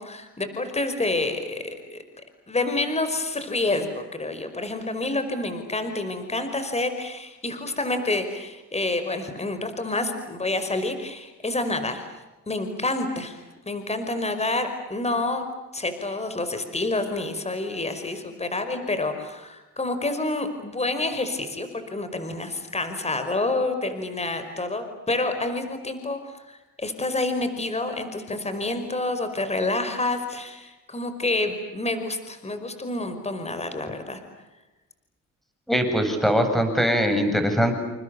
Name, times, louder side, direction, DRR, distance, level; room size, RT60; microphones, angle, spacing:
voice 1, 0.0-2.0 2.5-12.1 12.5-15.4 15.7-34.2, left 2 dB, 20° left, 8 dB, 5.3 m, -28 dB
voice 2, 35.7-37.7, equal, ahead, 6 dB, 8.0 m, -21 dB
29.5 x 28.5 x 7.0 m, 1.1 s
cardioid pair, 90°, 30 cm